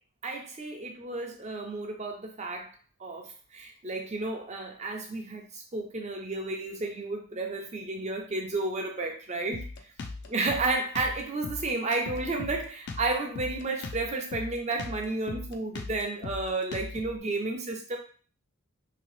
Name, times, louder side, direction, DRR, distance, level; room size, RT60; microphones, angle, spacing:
voice 1, 0.2-2.7 3.0-9.6 10.3-18.0, right 2 dB, 30° right, 3 dB, 0.6 m, -32 dB
Drum kit, 9.5-17.2, left 3 dB, 50° left, 0.4 m, -39 dB
2.9 x 2.8 x 3.2 m, 0.40 s
head